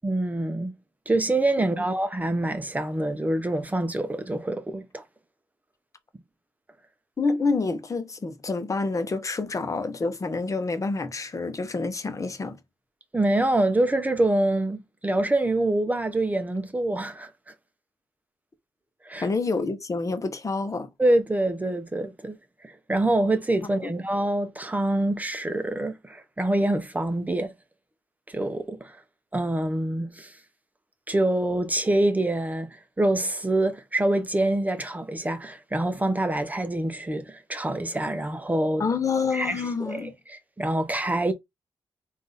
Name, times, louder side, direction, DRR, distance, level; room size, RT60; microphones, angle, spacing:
voice 1, 0.0-0.7 1.1-5.0 13.1-17.3 19.0-19.3 21.0-22.4 22.6-27.5 28.3-29.0 29.3-30.3 31.1-38.8 39.3-41.3, right 1 dB, 15° right, 0.7 m, -25 dB
voice 2, 7.2-12.6 19.2-20.9 23.8-23.9 38.8-40.1, left 4 dB, 35° left, 0.9 m, -28 dB
3.6 x 2.6 x 4.0 m
cardioid pair, 60°, 9 cm